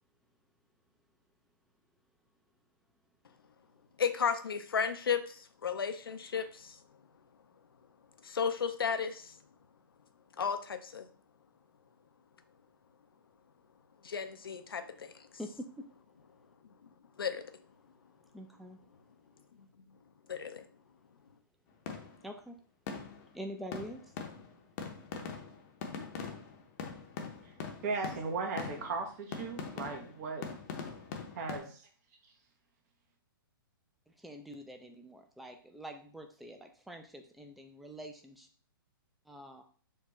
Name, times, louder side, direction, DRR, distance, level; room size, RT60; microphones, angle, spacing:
voice 1, 4.0-6.7 8.2-9.3 10.4-11.1 14.0-15.1 17.2-17.4 20.3-20.6, left 6 dB, 75° left, 9 dB, 0.5 m, -33 dB
voice 2, 15.4-15.8 18.3-18.8 22.2-22.6 23.3-24.0 34.2-38.5 39.3-39.6, equal, ahead, 4 dB, 0.3 m, -45 dB
sound 1, 21.9-22.3 22.9-23.4 23.7-31.6, left 5 dB, 40° left, 0.7 m, -42 dB
voice 3, 27.8-30.5 31.4-31.9, right 4 dB, 45° right, 4 dB, 0.7 m, -37 dB
4.4 x 2.3 x 2.9 m, 0.42 s
figure-of-eight pair, 120°, 12 cm